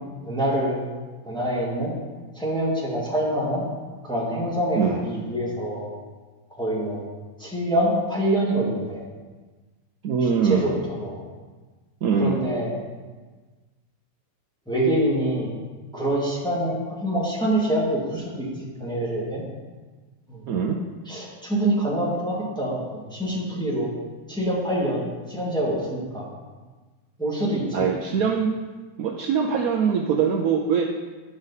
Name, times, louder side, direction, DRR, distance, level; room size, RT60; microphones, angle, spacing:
voice 1, 0.2-0.8 1.2-1.9 2.3-3.6 4.1-5.9 6.5-7.0 7.4-9.1 10.2-11.2 12.2-12.7 14.7-15.5 15.9-18.5 18.8-19.4 20.3-20.4 21.1-23.9 24.3-26.2 27.2-27.9, right 1 dB, ahead, -6 dB, 1.8 m, -25 dB
voice 2, 10.0-10.8 12.0-12.4 20.5-20.8 27.7-28.5 29.0-30.8, right 6 dB, 75° right, 0 dB, 0.8 m, -22 dB
11.0 x 5.2 x 4.0 m, 1.3 s
omnidirectional pair, 2.2 m